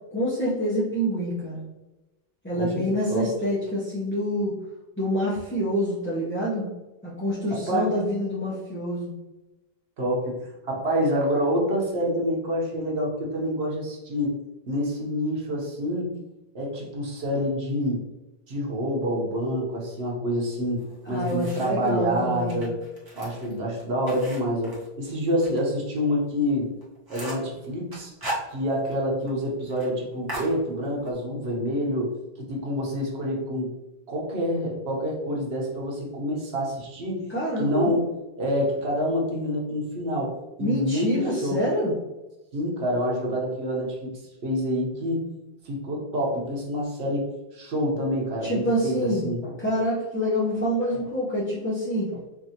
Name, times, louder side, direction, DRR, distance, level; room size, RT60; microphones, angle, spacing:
voice 1, 0.1-1.6 2.4-4.5 5.0-6.7 7.0-9.1 21.0-22.6 37.3-37.9 40.6-41.9 48.4-49.3 49.6-52.1, equal, 15° left, -8 dB, 0.6 m, -26 dB
voice 2, 2.5-3.3 7.5-7.9 10.0-14.3 14.7-16.1 16.5-18.0 18.5-22.8 23.1-26.7 27.1-28.1 28.5-33.7 34.1-37.3 37.6-38.0 38.4-41.6 42.5-45.2 45.6-47.3 47.5-49.5, equal, 80° right, -2 dB, 1.2 m, -27 dB
sound 1, 20.8-21.9 22.4-25.6 26.0-26.1 26.4-26.5 26.8-27.5 27.9-29.0 29.3-29.4 29.7-29.9 30.3-31.1, right 1 dB, 20° right, 1.0 m, -37 dB
4.7 x 2.6 x 2.8 m, 1.0 s
omnidirectional pair, 1.1 m